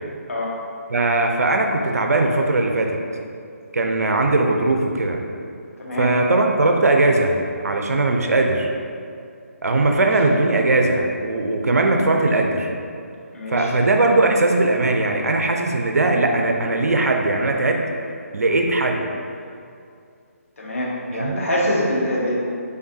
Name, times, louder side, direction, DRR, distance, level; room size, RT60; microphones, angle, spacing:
voice 1, 0.3-0.6 5.8-6.2 10.0-10.1 13.3-13.7 20.6-22.4, equal, 60° left, -4 dB, 0.9 m, -24 dB
voice 2, 0.9-3.0 3.7-5.2 6.0-7.4 7.6-8.7 9.6-12.7 13.5-17.8 18.3-19.1 21.1-21.4, right 2 dB, 75° right, 3 dB, 0.5 m, -19 dB
3.8 x 3.5 x 2.7 m, 2.4 s
figure-of-eight pair, 155°, 8 cm